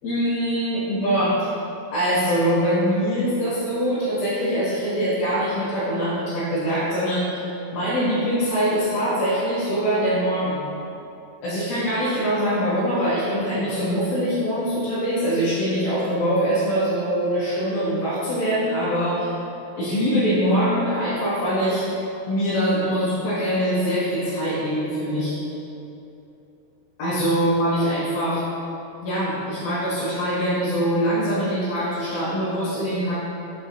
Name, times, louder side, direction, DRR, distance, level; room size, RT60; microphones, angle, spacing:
voice 1, 0.0-1.5 1.9-7.4 7.7-10.6 11.4-19.3 19.8-21.8 22.3-25.3 27.0-28.4 29.0-33.1, equal, 65° left, -12 dB, 3.3 m, -23 dB
8.9 x 4.6 x 3.1 m, 2.9 s
omnidirectional pair, 4.7 m